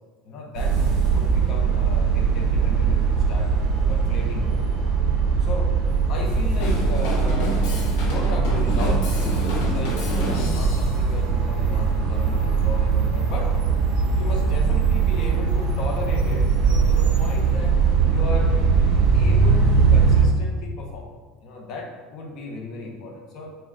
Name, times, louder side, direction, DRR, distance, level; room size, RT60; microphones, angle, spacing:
voice 1, 0.2-0.8 1.1-3.5 3.9-4.7 5.4-5.8 6.1-7.6 7.9-13.5 14.1-17.7 18.1-18.6 19.1-21.1 21.4-23.5, left 2 dB, 40° left, 1 dB, 0.7 m, -35 dB
sound 1, 0.5-20.2, right 5 dB, 75° right, 1.1 m, -21 dB
Drum kit / Drum, 6.6-11.0, left 1 dB, 85° left, 1.2 m, -30 dB
5.2 x 2.3 x 3.7 m, 1.4 s
cardioid pair, 170°, 0 cm